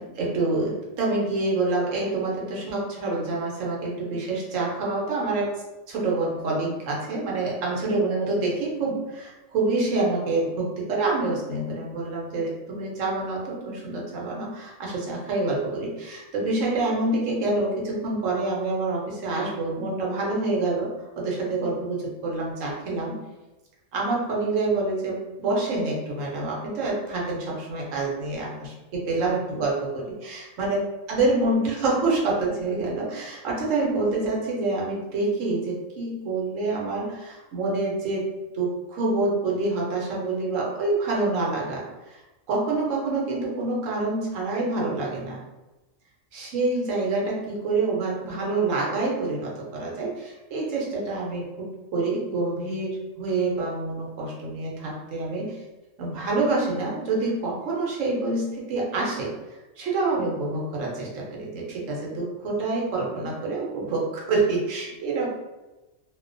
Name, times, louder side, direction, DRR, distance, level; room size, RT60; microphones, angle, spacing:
voice 1, 0.0-5.5 5.9-23.2 23.9-30.8 31.1-38.3 38.5-42.2 42.5-45.4 46.3-55.6 56.0-59.3 59.8-65.3, right 3 dB, 85° right, -3 dB, 1.1 m, -27 dB
2.5 x 2.1 x 2.5 m, 1.1 s
omnidirectional pair, 1.3 m